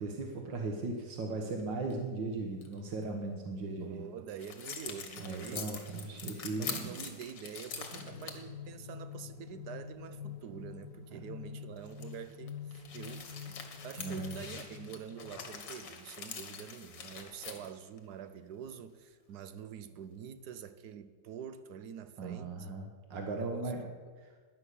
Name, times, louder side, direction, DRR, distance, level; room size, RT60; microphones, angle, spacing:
voice 1, 0.0-4.1 5.2-6.9 10.5-10.6 11.1-11.2 14.0-14.4 22.2-23.8 24.2-24.3, right 3 dB, 90° right, 2.0 m, -38 dB
sound 1, 1.6-1.9 2.6-2.8 4.4-8.4 9.1-9.2 11.8-18.0, left 6 dB, 90° left, 2.3 m, -44 dB
voice 2, 3.8-22.7 23.4-23.7, right 8 dB, 70° right, 1.3 m, -46 dB
sound 2, 7.7-15.6, left 7 dB, 70° left, 1.7 m, -47 dB
12.0 x 10.5 x 8.4 m
omnidirectional pair, 1.9 m